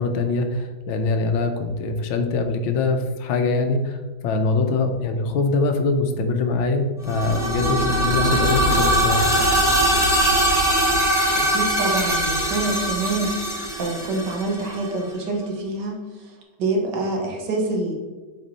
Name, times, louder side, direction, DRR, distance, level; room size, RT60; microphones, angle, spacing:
voice 1, 0.0-9.3, left 3 dB, 85° left, 6 dB, 1.6 m, -23 dB
sound 1, 7.0-14.9, right 1 dB, ahead, 1.4 m, -21 dB
voice 2, 11.3-16.0 16.6-17.9, right 2 dB, 65° right, 2 dB, 1.6 m, -26 dB
7.3 x 4.4 x 4.0 m, 1.3 s
omnidirectional pair, 2.2 m